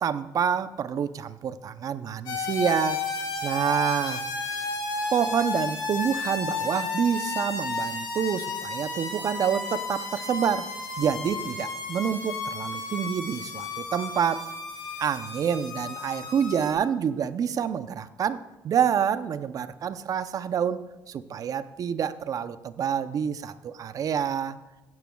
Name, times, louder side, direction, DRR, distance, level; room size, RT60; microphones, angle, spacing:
voice 1, 0.0-3.0 3.4-4.2 5.1-10.7 11.0-14.4 15.0-20.8 21.1-24.6, right 8 dB, 55° right, 13 dB, 0.6 m, -27 dB
sound 1, 2.3-16.7, left 3 dB, 70° left, 3.4 m, -33 dB
15.5 x 10.5 x 2.3 m, 1.1 s
supercardioid pair, 80°, 7 cm